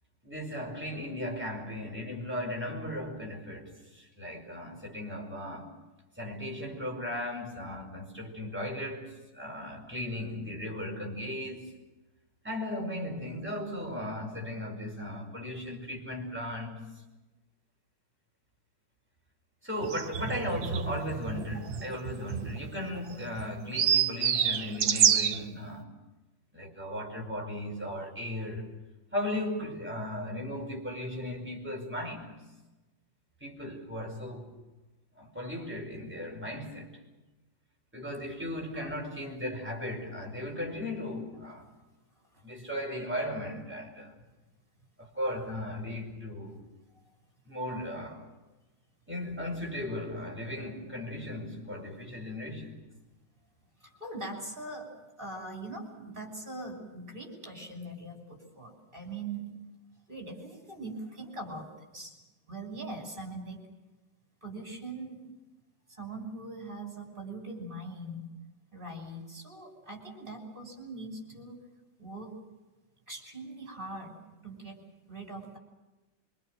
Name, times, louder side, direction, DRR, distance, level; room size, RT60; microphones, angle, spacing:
voice 1, 0.2-5.7 6.2-11.7 12.4-17.0 19.6-25.9 26.5-28.7 29.1-32.4 33.4-34.5 35.2-36.9 37.9-41.7 42.4-44.2 45.0-46.7 47.5-48.3 49.1-52.8, left 1 dB, 5° right, 5.3 m, -36 dB
sound 1, 19.8-25.4, right 8 dB, 90° right, 1.8 m, -28 dB
voice 2, 53.8-59.5 60.1-62.2 62.5-63.6 64.4-65.3 65.9-68.3 68.7-71.6 72.0-72.4 73.1-74.2 74.4-74.8 75.1-75.6, right 2 dB, 25° right, 6.4 m, -41 dB
25.5 x 25.0 x 6.4 m
omnidirectional pair, 2.0 m